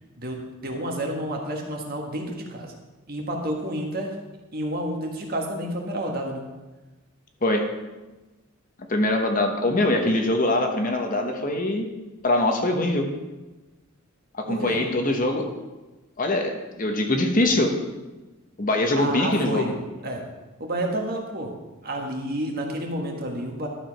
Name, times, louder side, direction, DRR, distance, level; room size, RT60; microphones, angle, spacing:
voice 1, 0.2-2.7 3.1-4.2 4.5-6.4 14.5-14.8 18.9-19.7 20.0-20.2 20.6-21.5 21.8-23.7, right 1 dB, 45° right, 1 dB, 1.5 m, -30 dB
voice 2, 8.9-11.9 12.2-13.0 14.5-15.5 16.2-17.7 18.6-19.7, left 1 dB, 40° left, 4 dB, 1.0 m, -23 dB
12.0 x 4.9 x 5.9 m, 1.1 s
head